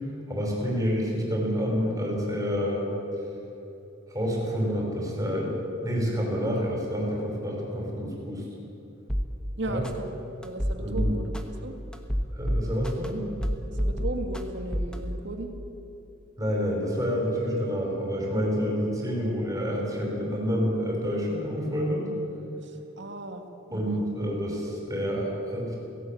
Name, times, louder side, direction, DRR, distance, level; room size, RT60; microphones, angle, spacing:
voice 1, 0.3-2.9 4.1-5.6 5.8-8.5 9.7-9.8 10.8-11.1 12.3-13.3 16.4-22.1 23.7-25.8, equal, 15° right, -2 dB, 5.4 m, -28 dB
sound 1, 9.1-9.3 9.8-9.9 10.4-11.4 11.9-13.1 13.4-14.4 14.7-14.9, equal, 5° left, 1.3 m, -27 dB
voice 2, 9.6-10.2 10.4-11.3 11.6-11.7 13.8-15.5 19.2-19.3 22.6-24.0, right 1 dB, 60° right, 4 dB, 2.1 m, -36 dB
17.5 x 17.0 x 8.7 m, 2.9 s
head